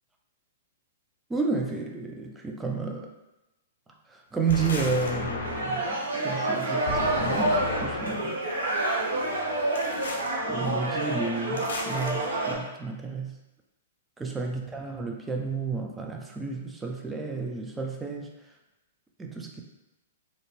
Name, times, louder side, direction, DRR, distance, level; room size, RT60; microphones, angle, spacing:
voice 1, 1.3-3.1 4.1-8.4 10.5-13.4 14.2-18.3 19.2-19.6, right 4 dB, 10° right, 2 dB, 0.4 m, -31 dB
sound 1, 4.5-6.0 6.9-8.3 9.7-10.3 11.5-12.1, left 3 dB, 75° left, 0.5 m, -33 dB
sound 2, 5.4-12.5, right 2 dB, 75° right, 0.8 m, -28 dB
2.6 x 2.0 x 3.1 m, 0.98 s
hypercardioid pair, 115°, 0 cm